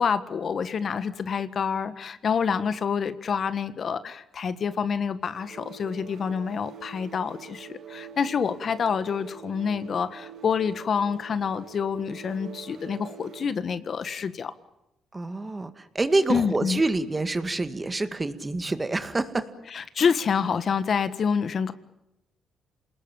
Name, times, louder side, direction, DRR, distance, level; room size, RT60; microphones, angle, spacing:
voice 1, 0.0-14.5 16.3-16.8 19.7-21.7, left 6 dB, 50° left, 13 dB, 1.5 m, -27 dB
sound 1, 5.3-13.7, right 7 dB, 65° right, 2.6 m, -45 dB
voice 2, 15.1-19.4 20.0-20.1, right 2 dB, 20° right, 11 dB, 2.0 m, -27 dB
28.0 x 20.0 x 8.9 m, 0.87 s
cardioid pair, 90°, 0 cm